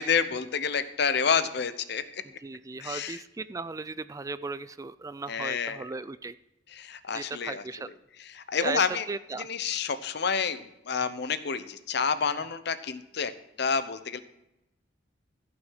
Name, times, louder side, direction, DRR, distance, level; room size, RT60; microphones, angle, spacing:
voice 1, 0.0-2.2 2.8-3.2 5.3-5.8 6.7-7.6 8.3-9.0 9.4-13.3 13.6-14.2, left 6 dB, 65° left, 12 dB, 0.8 m, -29 dB
voice 2, 2.4-6.4 7.1-7.9 8.6-9.5, right 3 dB, 20° right, 15 dB, 0.3 m, -36 dB
15.0 x 6.1 x 6.2 m, 0.90 s
head